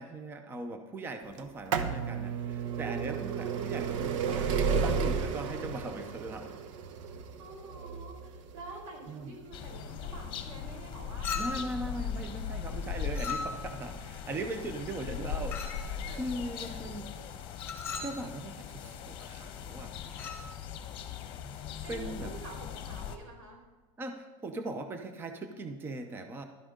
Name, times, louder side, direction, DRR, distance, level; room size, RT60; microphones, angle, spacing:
voice 1, 0.0-6.6 9.1-9.3 11.4-17.1 18.0-19.9 21.9-22.3 24.0-26.4, right 2 dB, 15° right, 7 dB, 0.7 m, -39 dB
sound 1, 1.4-13.0 13.8-13.9 14.9-15.0 15.2-15.3, right 6 dB, 70° right, 1.1 m, -33 dB
voice 2, 2.7-3.2 7.4-12.5 14.3-14.6 16.1-16.8 21.8-23.7, right 3 dB, 90° right, 0 dB, 4.9 m, -48 dB
sound 2, 9.5-23.2, left 7 dB, 30° left, 1.1 m, -39 dB
Chink clink, 11.2-11.8 13.1-13.8 15.5-15.9 17.6-18.2 20.1-20.5, left 5 dB, 15° left, 1.5 m, -37 dB
15.5 x 12.0 x 3.8 m, 1.3 s
supercardioid pair, 165°, 16 cm